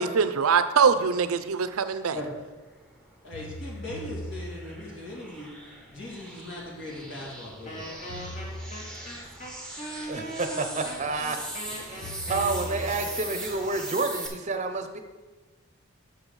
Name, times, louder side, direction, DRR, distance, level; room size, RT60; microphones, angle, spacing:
voice 1, 0.0-2.2, right 6 dB, 80° right, 11 dB, 0.5 m, -23 dB
sound 1, 0.7-0.8 3.3-4.9 8.1-9.2 12.0-13.4, equal, 85° left, 1.5 m, -39 dB
sound 2, 2.7-14.3, right 1 dB, 5° left, 1.0 m, -41 dB
voice 2, 3.2-5.5 5.9-8.1, left 1 dB, 60° left, -3 dB, 2.2 m, -39 dB
Wind instrument woodwind instrument, 7.6-13.5, equal, 35° left, 1.5 m, -40 dB
voice 3, 10.1-11.4 11.7-15.0, right 3 dB, 35° right, 6 dB, 0.7 m, -30 dB
6.6 x 5.3 x 6.4 m, 1.2 s
head